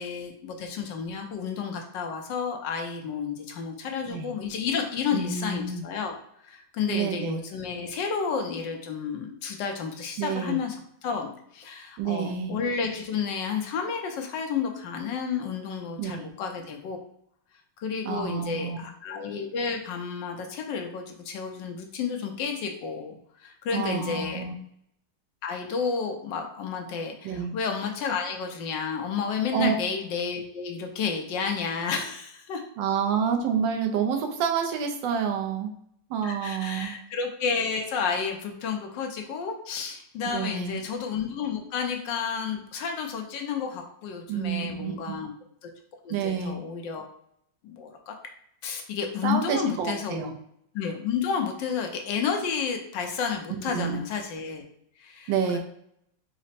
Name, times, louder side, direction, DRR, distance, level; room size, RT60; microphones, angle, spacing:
voice 1, 0.0-6.2 6.4-10.8 11.0-17.0 17.8-24.4 25.4-32.6 36.2-45.3 45.6-45.7 46.0-47.0 47.6-48.1 48.6-50.3 50.7-54.6 55.0-55.6, left 6 dB, 75° left, 3 dB, 1.2 m, -31 dB
voice 2, 5.1-5.8 6.9-7.4 10.2-10.6 12.0-12.6 16.0-16.2 18.0-18.8 23.7-24.6 27.2-27.5 29.5-29.7 32.8-35.7 36.1-36.9 40.3-40.8 44.3-45.2 46.1-46.6 49.2-50.3 53.7-54.0 55.3-55.6, right 7 dB, 75° right, 4 dB, 1.2 m, -28 dB
5.0 x 2.1 x 4.1 m, 0.70 s
omnidirectional pair, 2.2 m